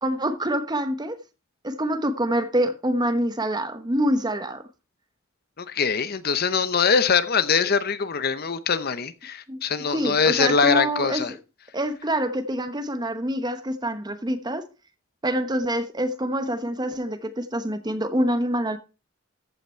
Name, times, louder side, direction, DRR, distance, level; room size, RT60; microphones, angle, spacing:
voice 1, 0.0-1.2 1.6-4.6 9.5-9.6 9.9-11.4 11.7-14.7 15.2-18.8, right 1 dB, 20° right, 1.1 m, -26 dB
voice 2, 5.6-11.3, left 5 dB, 50° left, 0.7 m, -23 dB
14.5 x 5.9 x 4.4 m
head